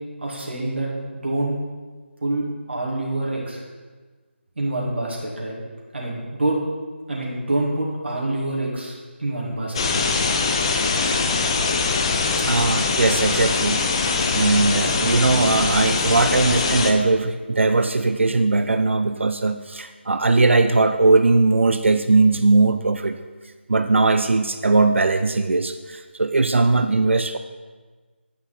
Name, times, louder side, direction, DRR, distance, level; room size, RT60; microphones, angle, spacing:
voice 1, 0.2-1.6 2.2-3.6 4.6-5.6 5.9-6.6 7.1-10.1, right 2 dB, 65° right, -4 dB, 2.3 m, -26 dB
sound 1, 9.7-16.9, left 4 dB, 25° left, 0.5 m, -22 dB
voice 2, 12.5-13.9 14.3-23.1 23.7-27.4, right 3 dB, 85° right, 9 dB, 0.4 m, -19 dB
9.6 x 5.7 x 4.2 m, 1.4 s
figure-of-eight pair, 165°, 7 cm